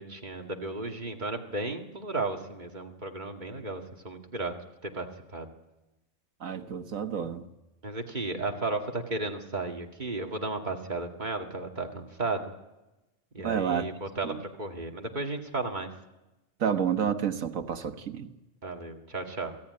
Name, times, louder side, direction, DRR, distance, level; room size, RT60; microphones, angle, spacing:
voice 1, 0.0-4.5 4.8-5.1 5.3-5.5 7.8-12.4 13.3-15.9 18.6-19.5, right 2 dB, 35° right, 2.2 m, -34 dB
voice 2, 6.4-7.4 13.4-13.9 14.2-14.4 16.6-18.3, right 8 dB, 80° right, 1.7 m, -29 dB
28.0 x 17.5 x 9.6 m
omnidirectional pair, 1.4 m